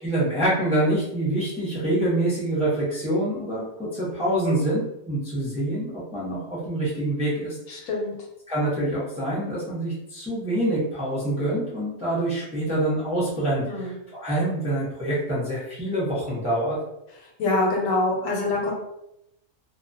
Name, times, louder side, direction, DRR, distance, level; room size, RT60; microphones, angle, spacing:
voice 1, 0.0-7.6 8.5-16.8, right 1 dB, 10° right, -8 dB, 0.5 m, -26 dB
voice 2, 7.7-8.1 13.7-13.9 17.4-18.7, left 2 dB, 75° left, -1 dB, 1.0 m, -25 dB
2.2 x 2.2 x 2.5 m, 0.83 s
omnidirectional pair, 1.4 m